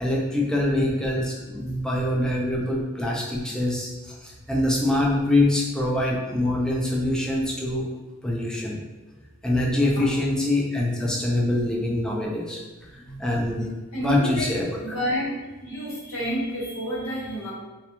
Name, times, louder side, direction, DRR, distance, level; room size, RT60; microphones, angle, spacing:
voice 1, 0.0-3.9 4.2-7.9 8.2-8.8 9.4-12.6 12.9-13.7 14.0-14.7, left 1 dB, 5° left, -3 dB, 0.4 m, -24 dB
voice 2, 13.0-13.7 13.9-15.3 15.6-17.5, equal, 80° left, -6 dB, 0.9 m, -30 dB
2.2 x 2.2 x 2.9 m, 1.2 s
head